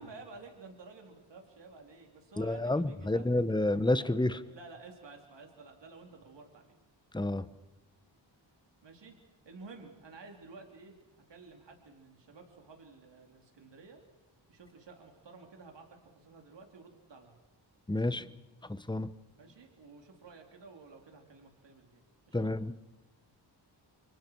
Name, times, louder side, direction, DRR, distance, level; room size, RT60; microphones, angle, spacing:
voice 1, 0.0-3.5 4.0-6.8 8.8-9.2 9.5-14.0 14.5-17.4 19.4-22.0 22.3-22.5, right 4 dB, 70° right, 2 dB, 3.7 m, -52 dB
voice 2, 2.4-4.4 7.1-7.4 17.9-18.3 18.7-19.1 22.3-22.7, left 2 dB, 10° left, 13 dB, 1.1 m, -29 dB
30.0 x 24.5 x 4.7 m, 1.0 s
cardioid pair, 70°, 45 cm